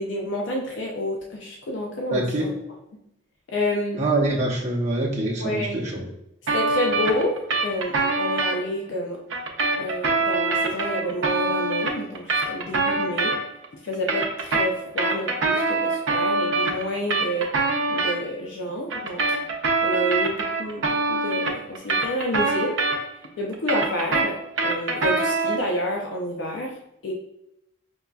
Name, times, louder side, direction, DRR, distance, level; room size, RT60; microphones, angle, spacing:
voice 1, 0.0-2.5 3.5-4.0 5.4-5.8 6.5-9.2 9.8-13.4 13.8-17.5 17.9-19.4 19.8-22.8 23.4-27.1, equal, 70° left, -1 dB, 0.5 m, -29 dB
voice 2, 2.1-2.5 4.0-6.1, right 2 dB, 35° right, -4 dB, 0.8 m, -24 dB
sound 1, 6.5-8.6 9.3-13.6 13.9-18.2 18.9-23.2 23.5-25.7, right 3 dB, 70° right, 0.6 m, -24 dB
5.2 x 2.2 x 2.3 m, 0.81 s
head